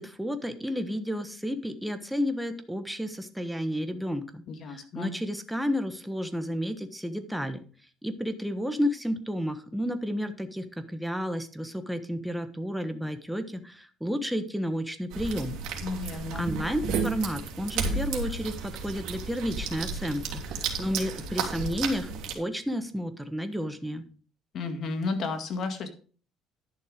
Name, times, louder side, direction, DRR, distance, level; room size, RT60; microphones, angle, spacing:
voice 1, 0.0-4.4 4.7-7.6 8.0-15.6 16.1-24.0, equal, ahead, 8 dB, 1.2 m, -31 dB
voice 2, 4.5-5.1 15.8-16.5 24.5-25.9, left 4 dB, 55° left, 7 dB, 2.0 m, -32 dB
sound 1, 15.1-22.3, right 5 dB, 75° right, 2.6 m, -33 dB
11.0 x 6.5 x 5.0 m, 0.40 s
cardioid pair, 125°, 0 cm